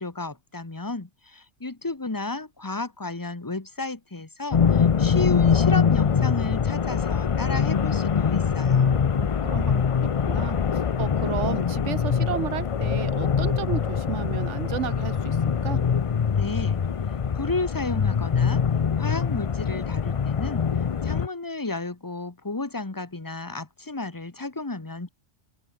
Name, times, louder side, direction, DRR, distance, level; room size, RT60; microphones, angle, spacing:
voice 1, 0.0-9.0 16.3-16.8 17.3-18.6 19.0-20.7 21.0-25.1, left 3 dB, 15° left, 1.3 m, -32 dB
sound 1, 4.5-21.3, left 7 dB, 50° left, 0.4 m, -23 dB
voice 2, 8.6-9.8 10.3-15.8, right 10 dB, 70° right, 1.1 m, -33 dB
omnidirectional pair, 1.3 m